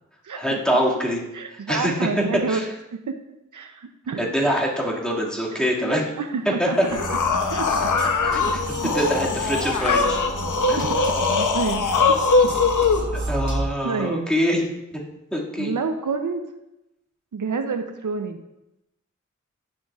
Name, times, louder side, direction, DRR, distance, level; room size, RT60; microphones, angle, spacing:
voice 1, 0.3-1.2 1.5-2.7 4.2-6.0 6.6-6.7 8.2-8.6 8.9-10.2 10.7-10.8 13.1-14.7 14.9-15.0 15.3-15.7, equal, 5° left, -4 dB, 2.0 m, -24 dB
voice 2, 1.3-2.6 2.9-3.1 3.5-4.3 5.5-6.8 7.5-7.9 8.8-8.9 10.8-12.0 12.4-12.6 13.8-14.3 15.6-16.4 17.3-18.4, right 4 dB, 90° right, 7 dB, 0.6 m, -29 dB
sound 1, 6.7-13.0, left 4 dB, 85° left, 0.7 m, -21 dB
sound 2, 6.9-13.7, right 2 dB, 70° right, 1.3 m, -32 dB
10.5 x 6.3 x 2.4 m, 0.91 s
wide cardioid pair, 50°, 30 cm